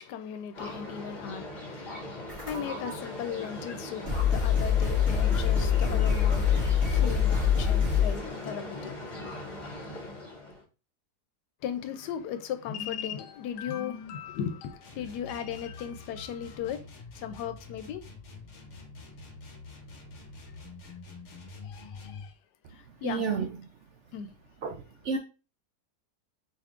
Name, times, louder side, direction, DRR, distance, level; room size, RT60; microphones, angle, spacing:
voice 1, 0.0-6.6 6.9-8.9 11.6-16.8 17.2-18.0 21.6-22.3 23.0-23.2 24.1-24.3, left 8 dB, 90° left, 1.2 m, -37 dB
sound 1, 0.5-10.6, left 2 dB, 30° left, 1.4 m, -39 dB
sound 2, 2.3-2.9 3.7-3.8 4.0-8.3, left 7 dB, 45° right, 2.3 m, -25 dB
sound 3, 14.8-22.3, left 3 dB, 50° left, 1.2 m, -46 dB
voice 2, 23.0-23.5 24.6-24.7 25.1-25.2, right 5 dB, 70° right, 0.7 m, -29 dB
4.4 x 3.5 x 2.4 m
omnidirectional pair, 1.7 m